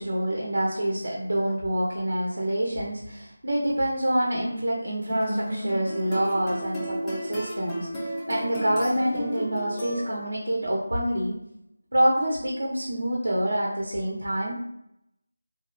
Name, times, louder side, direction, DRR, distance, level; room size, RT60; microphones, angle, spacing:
voice 1, 0.0-11.3 11.9-14.5, right 1 dB, 85° right, -3 dB, 0.6 m, -26 dB
sound 1, 5.1-10.5, equal, 10° left, 0.3 m, -33 dB
2.7 x 2.3 x 2.3 m, 0.80 s
figure-of-eight pair, 180°, 0 cm